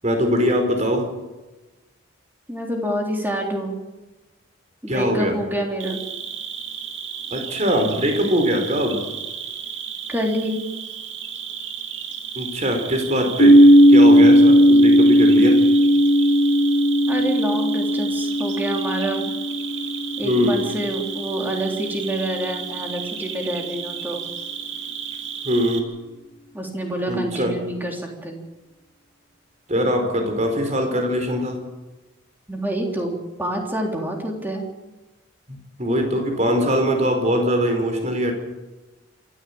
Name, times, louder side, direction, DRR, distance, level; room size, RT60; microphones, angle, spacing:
voice 1, 0.0-1.0 4.9-5.3 7.3-9.0 12.3-13.6 13.9-15.6 20.2-20.6 25.4-25.9 27.1-27.6 29.7-31.6 35.5-38.3, equal, 35° right, 5 dB, 4.7 m, -22 dB
voice 2, 2.5-3.8 4.8-6.0 10.1-10.6 17.1-19.3 20.2-24.2 26.5-28.4 32.5-34.7, right 1 dB, 10° right, 1 dB, 3.7 m, -27 dB
Cricket, 5.8-25.8, right 7 dB, 60° right, 2.5 m, -33 dB
sound 1, 13.4-21.2, equal, 65° left, 3.6 m, -15 dB
27.0 x 14.0 x 8.8 m, 1.1 s
head